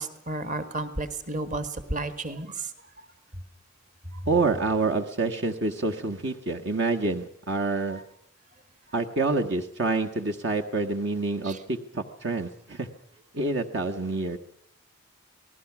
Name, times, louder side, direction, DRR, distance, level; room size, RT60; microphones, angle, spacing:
voice 1, 0.0-2.7 4.1-4.2 7.9-8.0 11.4-11.6, right 2 dB, 35° right, 11 dB, 1.9 m, -32 dB
voice 2, 4.3-8.0 8.9-12.9 13.3-14.4, right 3 dB, 55° right, 3 dB, 1.6 m, -27 dB
28.5 x 19.5 x 6.1 m, 0.68 s
head